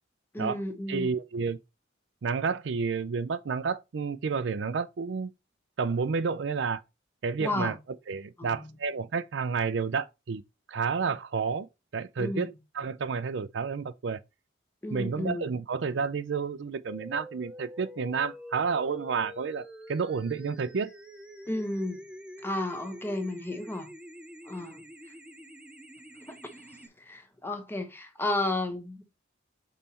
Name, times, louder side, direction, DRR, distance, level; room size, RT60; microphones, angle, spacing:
voice 1, 0.3-1.1 7.4-7.8 8.4-8.7 12.2-12.5 14.8-15.5 21.5-22.0 22.4-23.9 24.4-25.1 26.3-29.0, left 2 dB, 10° left, 0.9 m, -33 dB
voice 2, 0.9-1.6 2.2-5.3 5.8-6.8 7.2-7.7 8.1-10.4 10.7-11.7 11.9-14.2 14.9-20.9, right 5 dB, 65° right, 0.4 m, -30 dB
sound 1, 16.9-26.9, equal, 5° right, 0.6 m, -46 dB
5.5 x 4.1 x 4.3 m
head